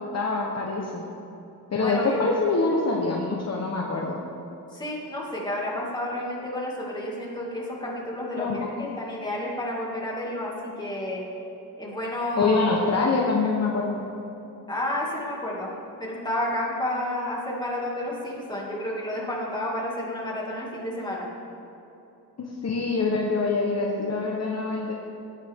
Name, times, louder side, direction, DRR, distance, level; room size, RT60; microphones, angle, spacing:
voice 1, 0.1-1.0 1.7-4.2 8.4-8.9 12.4-14.0 22.4-24.9, left 3 dB, 40° left, -1 dB, 1.1 m, -25 dB
voice 2, 1.8-2.2 4.7-11.3 11.8-12.6 14.7-15.7 16.0-21.3, left 1 dB, 10° left, -5 dB, 2.3 m, -31 dB
17.5 x 9.7 x 3.6 m, 2.9 s
wide cardioid pair, 160°, 38 cm